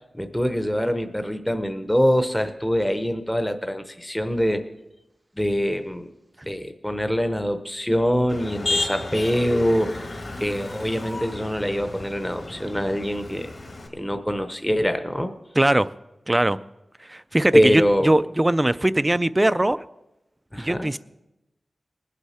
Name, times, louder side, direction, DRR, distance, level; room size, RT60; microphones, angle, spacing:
voice 1, 0.1-4.7 5.4-6.1 6.5-10.0 10.4-13.5 13.9-15.3 17.5-18.1 20.5-20.9, equal, 5° left, 8 dB, 0.7 m, -24 dB
Motor vehicle (road), 8.3-13.9, left 2 dB, 55° left, 2.0 m, -32 dB
voice 2, 15.6-15.9 16.3-16.6 17.1-19.8 20.6-21.0, right 1 dB, 15° right, 15 dB, 0.4 m, -20 dB
20.0 x 8.2 x 4.3 m, 0.94 s
wide cardioid pair, 110°, 0 cm